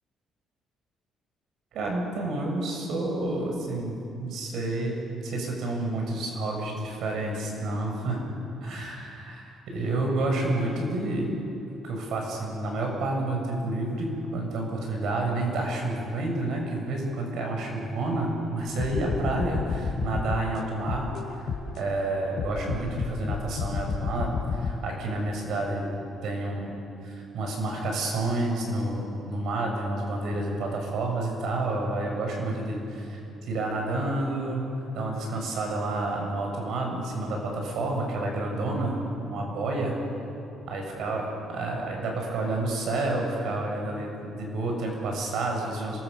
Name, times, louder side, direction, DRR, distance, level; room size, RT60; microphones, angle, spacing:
voice 1, 1.7-11.3 11.8-21.3 21.8-25.9 26.2-26.8 27.0-33.2 33.5-34.7 34.9-40.0 40.7-41.2 41.5-46.0, right 2 dB, 70° right, 1 dB, 7.2 m, -29 dB
sound 1, 18.8-21.9 22.4-24.7, left 6 dB, 60° left, 3.3 m, -31 dB
27.5 x 23.0 x 7.2 m, 2.8 s
cardioid pair, 120°, 0 cm